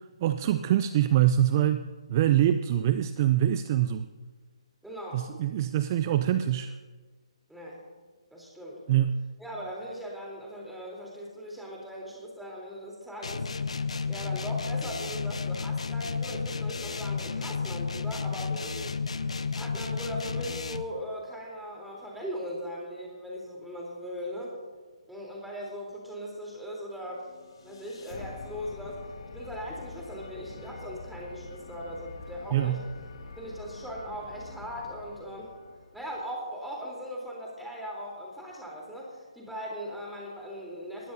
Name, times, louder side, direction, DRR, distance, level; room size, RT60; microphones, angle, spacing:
voice 1, 0.2-1.8 2.1-4.1 5.1-6.7 8.9-9.2 32.5-32.8, right 11 dB, 35° right, 11 dB, 0.5 m, -24 dB
voice 2, 4.8-5.2 7.5-7.8 8.3-8.8 9.4-13.5 14.1-18.9 19.6-24.6 25.1-27.3 27.6-29.0 29.3-32.8 33.4-35.5 35.9-41.1, equal, ahead, -4 dB, 3.7 m, -39 dB
sound 1, 13.2-21.0, left 5 dB, 70° left, 0.8 m, -32 dB
sound 2, 27.1-36.2, left 3 dB, 55° left, 2.0 m, -46 dB
21.0 x 16.0 x 2.8 m, 1.4 s
figure-of-eight pair, 145°, 3 cm